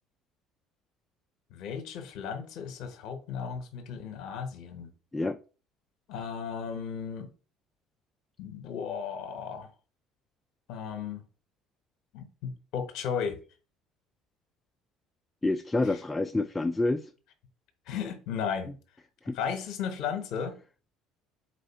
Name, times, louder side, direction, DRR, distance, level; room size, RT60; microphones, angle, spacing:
voice 1, 1.5-4.9 6.1-7.3 8.4-9.7 10.7-11.2 12.1-13.4 17.9-18.7 19.3-20.5, left 7 dB, 65° left, 0.8 m, -35 dB
voice 2, 15.4-17.1 19.3-19.4, left 2 dB, 10° left, 0.4 m, -28 dB
4.2 x 2.6 x 4.4 m
hypercardioid pair, 65°, 0 cm